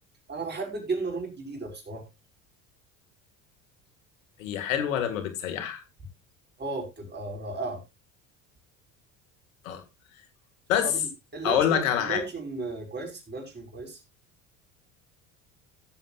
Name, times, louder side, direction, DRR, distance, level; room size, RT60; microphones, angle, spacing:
voice 1, 0.3-2.1 6.6-7.8 10.8-14.0, right 3 dB, 25° right, 5.4 m, -34 dB
voice 2, 4.4-5.8 9.6-9.8 10.7-10.9 11.4-12.2, left 9 dB, 90° left, 2.1 m, -26 dB
16.5 x 7.5 x 2.5 m
supercardioid pair, 85°, 39 cm